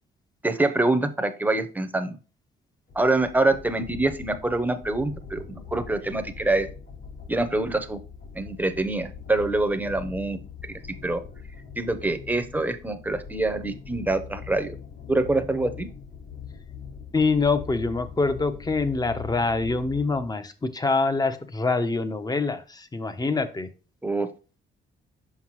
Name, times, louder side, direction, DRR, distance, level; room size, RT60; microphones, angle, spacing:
voice 1, 0.4-2.2 2.9-6.7 7.3-8.0 8.3-10.4 10.6-10.7 11.0-11.2 11.8-14.8 15.1-15.9 24.0-24.3, right 2 dB, 10° right, 9 dB, 0.8 m, -25 dB
sound 1, 2.9-20.3, left 6 dB, 65° left, 3.7 m, -42 dB
voice 2, 17.1-23.7, left 3 dB, 20° left, 10 dB, 0.8 m, -25 dB
5.8 x 5.5 x 3.1 m, 0.33 s
cardioid pair, 90°, 20 cm